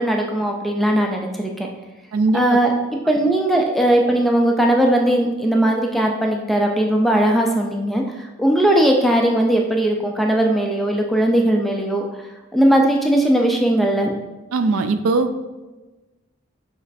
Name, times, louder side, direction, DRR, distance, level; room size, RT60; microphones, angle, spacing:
voice 1, 0.0-1.7 2.3-2.7 3.1-8.0 8.4-12.0 12.5-14.1, right 1 dB, ahead, 1 dB, 0.3 m, -18 dB
voice 2, 2.1-2.6 14.5-15.5, right 3 dB, 75° right, 10 dB, 0.3 m, -20 dB
6.4 x 3.1 x 2.6 m, 1.2 s
head